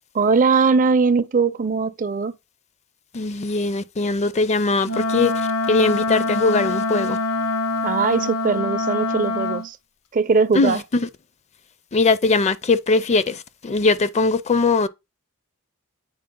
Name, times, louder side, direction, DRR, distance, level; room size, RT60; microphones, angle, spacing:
voice 1, 0.1-2.3 7.8-9.8 10.1-10.8, right 4 dB, 40° right, 0.4 m, -20 dB
voice 2, 3.1-7.2 10.5-11.1 11.9-14.9, left 3 dB, 30° left, 0.4 m, -20 dB
Wind instrument woodwind instrument, 4.8-9.7, left 2 dB, 80° left, 1.1 m, -24 dB
8.6 x 4.4 x 3.7 m
head